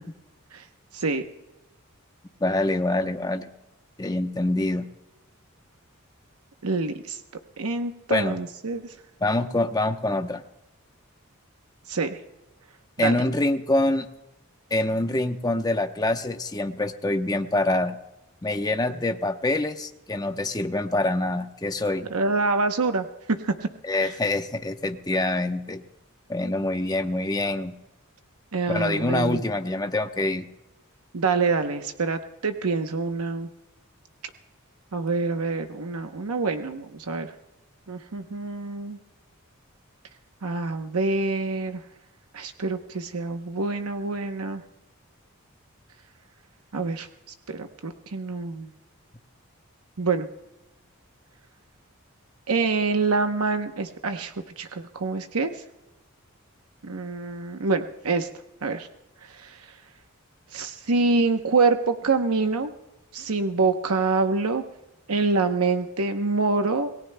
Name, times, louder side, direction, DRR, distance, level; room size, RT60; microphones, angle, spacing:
voice 1, 0.9-1.2 6.6-7.2 7.6-8.9 11.9-12.2 13.0-13.2 22.1-23.7 24.0-24.1 28.5-29.4 31.1-33.5 34.9-37.3 37.9-39.0 40.4-41.8 42.3-44.6 46.7-47.1 47.5-48.7 50.0-50.3 52.5-55.5 56.8-58.3 58.6-58.9 59.2-59.7 60.5-62.7 63.1-64.6 65.1-67.0, right 3 dB, 90° right, 6 dB, 0.9 m, -26 dB
voice 2, 2.4-3.5 4.0-4.9 8.1-8.4 9.2-10.4 13.0-14.1 14.7-18.0 18.4-22.1 23.8-25.8 26.3-27.8 28.7-30.5, left 2 dB, 20° left, 6 dB, 0.8 m, -25 dB
27.5 x 19.0 x 2.2 m, 0.97 s
head